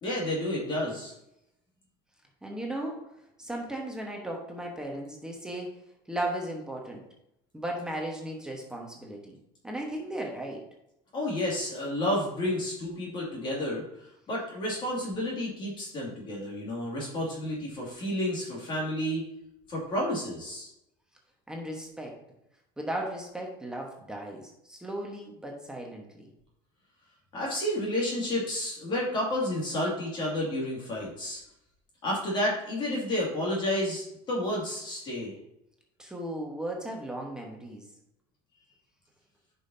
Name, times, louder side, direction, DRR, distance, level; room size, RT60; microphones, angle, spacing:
voice 1, 0.0-1.1 11.1-13.8 14.3-19.2 19.7-20.7 27.3-31.4 32.0-35.3, left 1 dB, 35° left, -3 dB, 2.3 m, -30 dB
voice 2, 2.4-3.0 3.4-5.7 6.1-7.0 7.5-9.4 9.6-10.6 21.5-22.2 22.8-26.3 36.0-37.9, right 1 dB, 5° right, 0 dB, 1.2 m, -36 dB
9.6 x 5.5 x 2.7 m, 0.83 s
cardioid pair, 130°, 13 cm